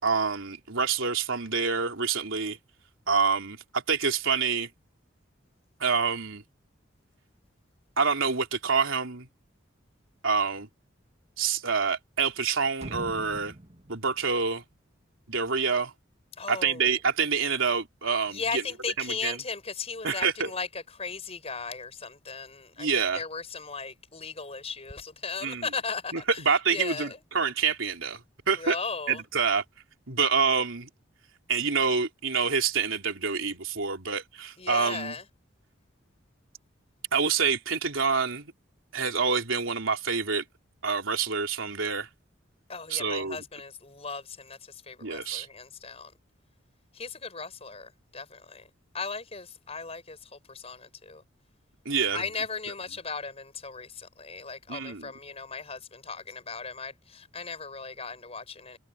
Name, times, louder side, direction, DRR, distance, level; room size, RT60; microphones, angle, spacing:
voice 1, 0.0-2.6 3.1-4.7 5.8-6.4 8.0-9.3 10.2-10.7 11.4-13.5 13.9-14.6 15.3-15.9 16.5-18.6 19.0-19.4 20.0-20.5 22.8-23.2 25.4-25.7 26.1-28.2 28.5-28.8 29.1-29.6 30.1-30.9 31.5-35.1 37.1-38.5 38.9-40.4 40.8-42.1 42.9-43.4 45.0-45.5 51.9-52.3 54.7-55.1, right 5 dB, 85° right, 3.5 m, -27 dB
sound 1, 12.8-15.6 15.9-16.0, right 1 dB, 35° right, 1.8 m, -44 dB
voice 2, 16.4-17.0 18.3-26.4 26.7-27.2 28.6-29.2 34.6-35.2 42.7-46.1 46.9-48.7 48.9-51.2 52.1-58.8, left 4 dB, 30° left, 5.6 m, -37 dB
head